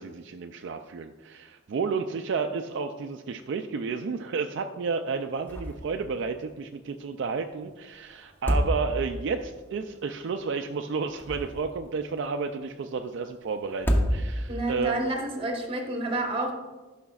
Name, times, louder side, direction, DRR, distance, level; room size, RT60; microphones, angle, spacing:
voice 1, 0.0-15.0, right 5 dB, 60° right, 6 dB, 0.3 m, -31 dB
sound 1, 5.5-6.0 6.3-6.4 8.2-9.3 11.0-11.8 13.7-14.6, equal, 10° left, 0.8 m, -27 dB
voice 2, 14.5-16.5, right 2 dB, 30° right, 2 dB, 1.1 m, -29 dB
12.5 x 5.8 x 2.4 m, 1.3 s
head